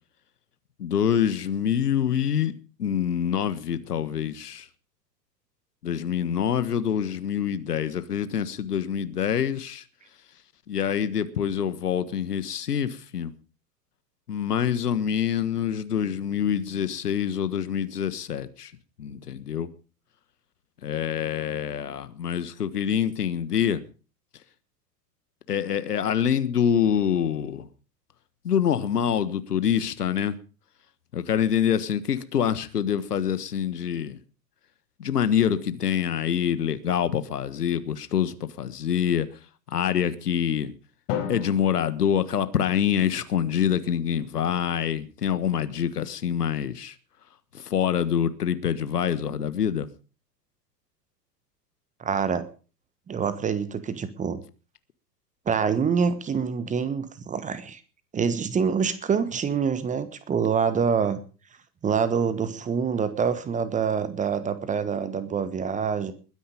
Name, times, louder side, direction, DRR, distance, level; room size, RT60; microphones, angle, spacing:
voice 1, 0.8-4.7 5.8-9.8 10.7-13.3 14.3-18.7 19.0-19.7 20.8-23.8 25.5-27.6 28.4-30.3 31.1-34.2 35.0-39.3 39.7-40.7 41.3-46.9 47.5-49.9, left 8 dB, 65° left, 1.5 m, -26 dB
Drum, 41.1-43.2, left 8 dB, 45° left, 5.2 m, -35 dB
voice 2, 52.0-52.4 53.1-54.4 55.5-57.8 58.1-61.2 61.8-66.1, right 6 dB, 15° right, 1.3 m, -26 dB
21.0 x 10.0 x 5.3 m
figure-of-eight pair, 95°, 50 cm